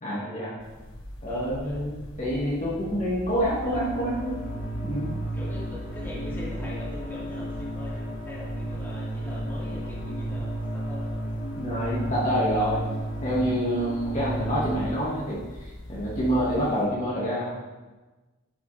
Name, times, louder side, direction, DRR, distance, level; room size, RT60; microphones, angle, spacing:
voice 1, 0.0-0.5 1.2-4.5 4.8-5.1 11.6-12.9 13.2-17.5, equal, 35° left, -7 dB, 1.9 m, -27 dB
sound 1, 0.6-16.9, left 1 dB, 60° left, 1.5 m, -42 dB
voice 2, 1.3-1.9 5.3-11.3, equal, 10° left, -8 dB, 2.5 m, -41 dB
sound 2, 3.7-14.9, right 1 dB, 80° left, 1.8 m, -33 dB
11.5 x 6.8 x 3.4 m, 1.2 s
head